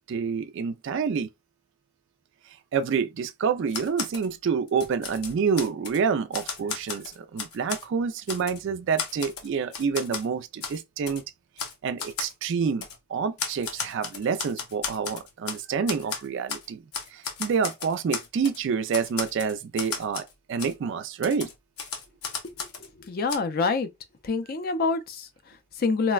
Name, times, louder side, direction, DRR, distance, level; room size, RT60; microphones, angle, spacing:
voice 1, 0.1-1.3 2.7-11.2 11.8-16.8 17.1-21.5, right 6 dB, 55° right, 0.3 m, -28 dB
Typewriter, 3.7-4.3 4.7-6.0 6.3-7.9 8.3-8.6 9.0-10.3 10.6-10.8 11.1-11.2 11.6-11.7 12.0-12.3 12.8-13.0 13.4-15.6 15.9-16.7 16.9-18.6 18.9-20.3 20.6-20.7 21.2-22.9 23.3-23.4, left 6 dB, 85° left, 0.7 m, -34 dB
voice 2, 22.6-23.9 24.2-26.1, left 4 dB, 45° left, 0.4 m, -27 dB
4.0 x 2.1 x 2.3 m
head